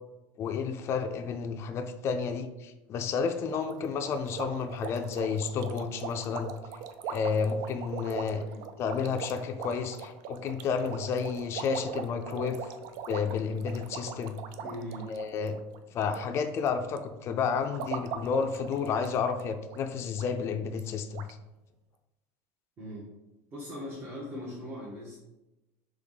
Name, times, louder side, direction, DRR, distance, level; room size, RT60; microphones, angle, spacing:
voice 1, 0.4-6.5 7.1-8.4 8.8-12.7 13.1-14.4 15.1-15.6 15.9-21.3, left 6 dB, 40° left, 7 dB, 0.4 m, -31 dB
sound 1, 3.5-16.3 16.5-17.0 17.5-19.4 19.7-19.8 20.2-20.3 20.8-20.9 21.1-21.3, right 7 dB, 65° right, 0.4 m, -41 dB
voice 2, 14.6-15.1 22.8-23.1 23.5-25.2, equal, 35° right, -6 dB, 1.2 m, -40 dB
3.5 x 3.1 x 3.9 m, 0.99 s
supercardioid pair, 125°, 7 cm